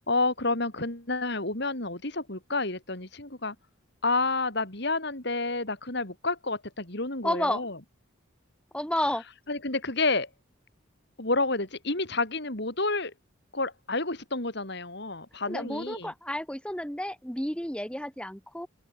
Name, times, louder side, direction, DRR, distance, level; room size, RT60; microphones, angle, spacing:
voice 1, 0.0-3.6 4.0-7.8 9.5-10.3 11.2-13.1 13.5-16.1, left 3 dB, 55° left, 4.1 m, -29 dB
voice 2, 7.2-7.6 8.7-9.2 15.5-18.7, left 1 dB, 5° left, 4.6 m, -31 dB
open air
head